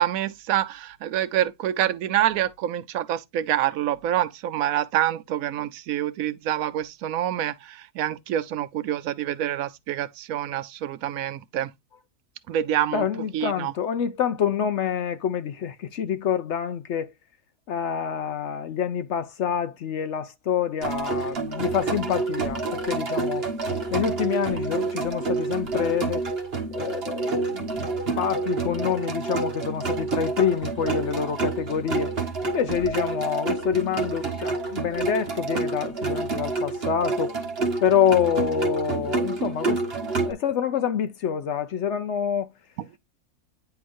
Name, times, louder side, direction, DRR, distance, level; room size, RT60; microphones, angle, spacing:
voice 1, 0.0-11.7 12.5-13.1 13.3-13.7, right 12 dB, 80° right, 1.0 m, -26 dB
voice 2, 12.9-17.1 17.7-23.4 23.9-26.2 26.7-32.1 32.4-37.3 37.8-39.8 40.2-42.5, left 8 dB, 65° left, 0.9 m, -26 dB
sound 1, 20.8-40.3, right 3 dB, 45° right, 1.5 m, -28 dB
9.4 x 4.8 x 2.5 m
omnidirectional pair, 1.5 m